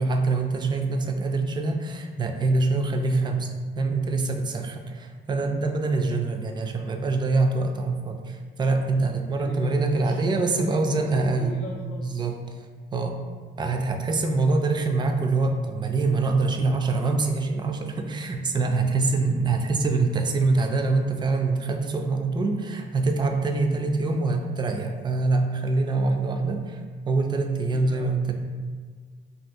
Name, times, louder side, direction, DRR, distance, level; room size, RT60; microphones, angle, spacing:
voice 1, 0.0-3.5 3.8-11.6 12.0-12.4 12.9-13.2 13.6-28.3, right 3 dB, 25° right, 4 dB, 0.3 m, -24 dB
voice 2, 9.0-12.3 27.7-28.3, left 3 dB, 65° left, -3 dB, 0.4 m, -39 dB
2.7 x 2.4 x 3.4 m, 1.5 s
cardioid pair, 90°, 20 cm